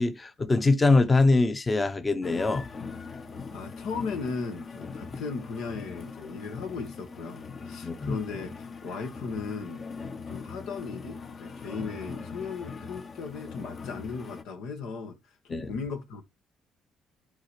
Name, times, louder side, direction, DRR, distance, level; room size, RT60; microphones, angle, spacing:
voice 1, 0.0-2.7 7.8-8.2 15.5-15.7, left 3 dB, 25° left, 1.0 m, -23 dB
sound 1, 2.2-14.4, left 4 dB, 45° left, 1.3 m, -41 dB
voice 2, 3.5-9.8 10.3-16.2, left 5 dB, 80° left, 1.7 m, -37 dB
11.0 x 4.0 x 3.3 m
supercardioid pair, 80°, 0 cm